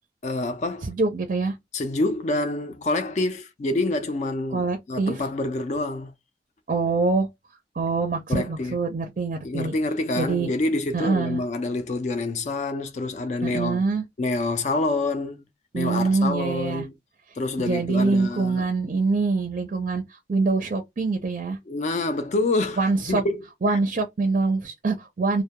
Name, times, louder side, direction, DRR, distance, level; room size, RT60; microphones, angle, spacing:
voice 1, 0.2-0.9 1.7-6.1 8.3-8.8 9.4-13.8 14.2-15.4 15.7-16.9 17.4-18.6 21.7-23.8, left 2 dB, 40° left, 0.3 m, -27 dB
voice 2, 0.8-1.5 4.5-5.2 6.7-7.3 7.8-9.7 10.1-10.5 10.9-11.4 13.4-14.0 15.7-16.9 17.6-21.6 22.8-23.2 23.6-25.4, right 3 dB, 45° right, 0.4 m, -24 dB
2.2 x 2.1 x 2.8 m
head